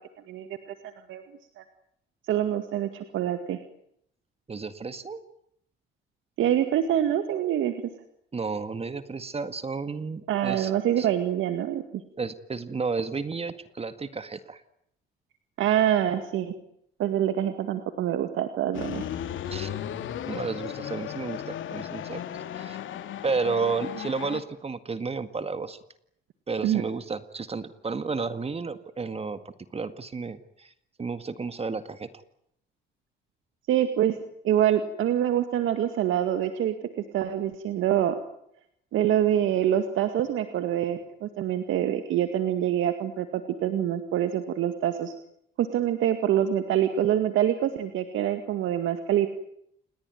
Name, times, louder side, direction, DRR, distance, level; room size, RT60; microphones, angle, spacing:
voice 1, 0.3-1.2 1.6-1.7 2.3-3.6 6.4-7.8 10.3-11.8 15.6-16.5 17.0-19.1 26.6-26.8 33.7-34.2 34.4-36.9 37.1-38.2 38.9-45.1 45.6-49.3, right 11 dB, 80° right, 9 dB, 2.1 m, -25 dB
voice 2, 4.5-5.2 8.3-10.7 11.0-11.1 12.2-14.6 19.5-19.7 20.3-22.2 22.6-22.8 23.2-25.8 26.5-29.4 29.7-30.7 31.0-32.2, right 4 dB, 30° right, 12 dB, 1.9 m, -32 dB
sound 1, 18.7-24.4, left 10 dB, 75° left, 2.6 m, -35 dB
28.5 x 20.5 x 9.4 m, 0.73 s
cardioid pair, 90°, 20 cm